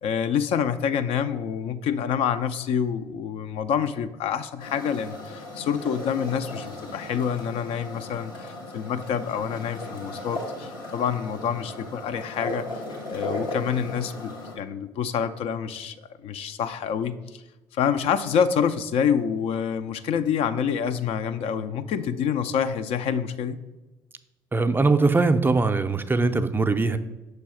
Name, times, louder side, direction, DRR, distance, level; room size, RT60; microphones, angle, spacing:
voice 1, 0.0-12.8 13.1-16.0 16.2-17.4 17.7-23.6, left 7 dB, 60° left, 10 dB, 0.4 m, -27 dB
sound 1, 4.6-14.5, left 2 dB, 90° left, 1.3 m, -36 dB
voice 2, 24.5-27.0, right 3 dB, 20° right, 9 dB, 0.4 m, -21 dB
6.1 x 3.3 x 4.8 m, 1.1 s
hypercardioid pair, 55°, 11 cm